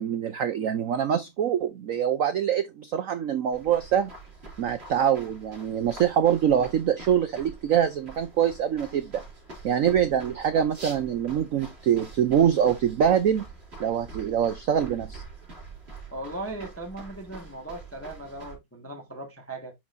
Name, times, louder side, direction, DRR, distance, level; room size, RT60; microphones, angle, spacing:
voice 1, 0.0-4.1 4.6-9.2 9.6-13.4 13.8-15.2, right 9 dB, 85° right, 0.7 m, -24 dB
sound 1, 3.5-18.6, right 3 dB, 30° right, 3.5 m, -45 dB
voice 2, 16.1-19.7, right 2 dB, 10° left, 1.2 m, -38 dB
10.5 x 4.3 x 2.6 m
omnidirectional pair, 2.2 m